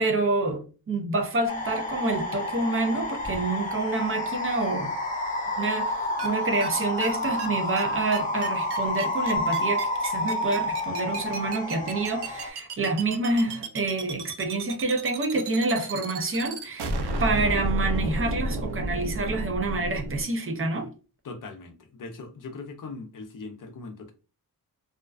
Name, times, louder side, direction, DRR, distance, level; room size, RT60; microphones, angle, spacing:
voice 1, 0.0-4.9 5.6-16.9 17.2-20.9, right 3 dB, 35° right, 0.5 m, -27 dB
sound 1, 1.5-12.5, left 1 dB, 20° left, 0.7 m, -29 dB
sound 2, 6.2-6.3 6.6-6.7 7.0-7.1 7.4-7.5 7.8-7.9 8.1-20.2, right 2 dB, 90° right, 0.5 m, -31 dB
voice 2, 21.2-24.1, left 3 dB, 55° left, 0.5 m, -40 dB
2.4 x 2.1 x 2.3 m
wide cardioid pair, 105°, 39 cm